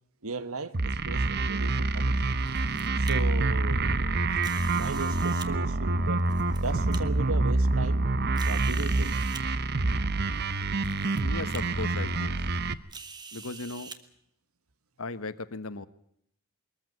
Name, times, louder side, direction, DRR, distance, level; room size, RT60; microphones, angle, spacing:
voice 1, 0.2-2.3 3.0-4.4 4.7-6.3 6.6-8.1 8.4-9.2, right 3 dB, 75° right, 1.4 m, -37 dB
sound 1, 0.7-12.7, right 2 dB, 45° right, 0.8 m, -27 dB
sound 2, 2.5-3.1 4.4-5.5 6.2-7.0 7.7-7.8 8.4-9.4 10.3-10.4 10.8-11.2 11.5-11.6 12.9-14.0, right 5 dB, 20° right, 1.2 m, -45 dB
voice 2, 11.2-12.4 13.3-13.9 15.0-15.9, left 3 dB, 75° left, 1.1 m, -37 dB
22.0 x 14.5 x 9.4 m
head